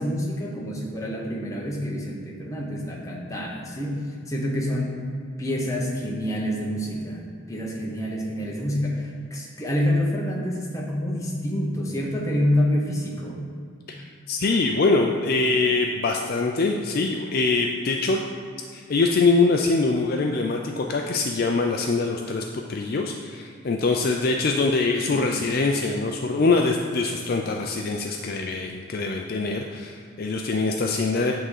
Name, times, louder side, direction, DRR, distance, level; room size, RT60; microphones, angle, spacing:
voice 1, 0.0-5.0 5.4-13.4 25.1-25.4, left 1 dB, 15° left, -3 dB, 1.1 m, -27 dB
voice 2, 13.9-18.2 18.7-31.3, left 3 dB, 45° left, 2 dB, 0.4 m, -23 dB
8.9 x 3.7 x 6.6 m, 2.2 s
head